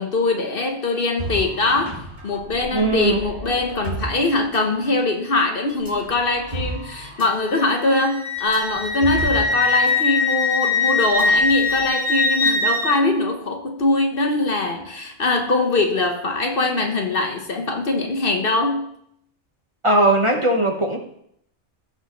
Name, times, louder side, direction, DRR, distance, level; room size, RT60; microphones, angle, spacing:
voice 1, 0.0-2.0 2.2-18.9, left 2 dB, 55° left, 4 dB, 1.1 m, -22 dB
sound 1, 1.2-5.1 5.7-9.9 10.2-10.4 11.0-11.9, right 2 dB, 75° right, 3.1 m, -34 dB
voice 2, 2.7-3.2 19.8-21.0, right 2 dB, 30° right, 2 dB, 1.0 m, -18 dB
Wind instrument woodwind instrument, 7.2-13.0, left 3 dB, 25° left, 2.2 m, -22 dB
16.0 x 5.6 x 3.0 m, 0.71 s
omnidirectional pair, 1.2 m